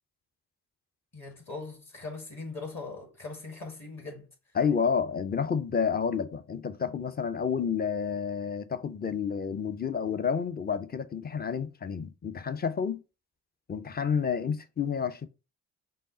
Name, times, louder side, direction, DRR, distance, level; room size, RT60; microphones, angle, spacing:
voice 1, 1.1-4.3, left 3 dB, 40° left, 1.7 m, -40 dB
voice 2, 4.6-13.0 13.7-15.3, left 6 dB, 20° left, 0.5 m, -30 dB
5.3 x 2.1 x 3.7 m
hypercardioid pair, 40°, 43 cm